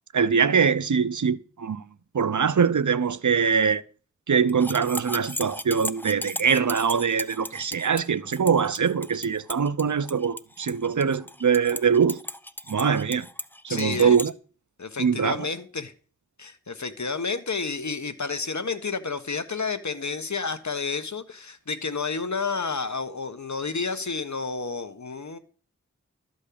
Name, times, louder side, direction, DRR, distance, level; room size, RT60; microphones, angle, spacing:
voice 1, 0.1-1.8 2.1-3.8 4.3-12.2 12.7-13.3 13.6-14.3 15.0-15.5, right 6 dB, 80° right, 0.6 m, -23 dB
sound 1, 4.5-14.3, left 1 dB, 5° left, 0.8 m, -36 dB
voice 2, 13.7-14.2 14.8-15.9 16.4-25.4, left 4 dB, 70° left, 1.3 m, -30 dB
13.0 x 5.4 x 8.5 m
wide cardioid pair, 45°, 29 cm